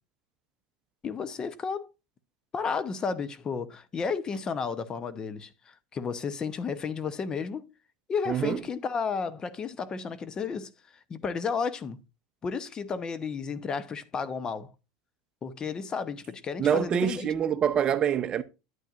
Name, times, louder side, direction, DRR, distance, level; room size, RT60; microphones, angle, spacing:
voice 1, 1.0-1.9 2.5-7.7 8.1-10.7 11.1-12.0 12.4-14.7 15.4-17.3, left 5 dB, 25° left, 0.9 m, -32 dB
voice 2, 8.3-8.6 16.6-18.4, right 8 dB, 30° right, 0.7 m, -25 dB
9.4 x 9.1 x 2.5 m
supercardioid pair, 115°, 3 cm